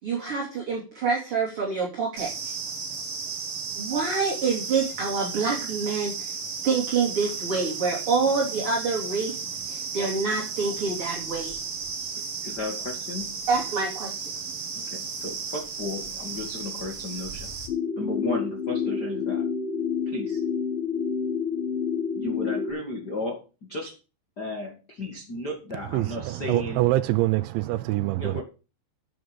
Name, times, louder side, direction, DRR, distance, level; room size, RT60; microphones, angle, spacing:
voice 1, 0.0-2.5 3.8-6.3 6.6-9.4 9.7-11.6 13.5-14.3, right 4 dB, 35° right, 3.3 m, -27 dB
sound 1, 2.2-17.7, right 5 dB, 55° right, 1.6 m, -34 dB
voice 2, 12.4-13.4 14.7-17.5 18.0-19.5 20.1-20.4 22.1-23.9 24.4-26.8 28.2-28.4, left 2 dB, 70° left, 0.9 m, -34 dB
sound 2, 17.7-22.7, left 6 dB, 85° left, 4.8 m, -28 dB
voice 3, 25.9-28.4, right 17 dB, 85° right, 3.0 m, -25 dB
9.7 x 9.3 x 5.2 m
omnidirectional pair, 5.2 m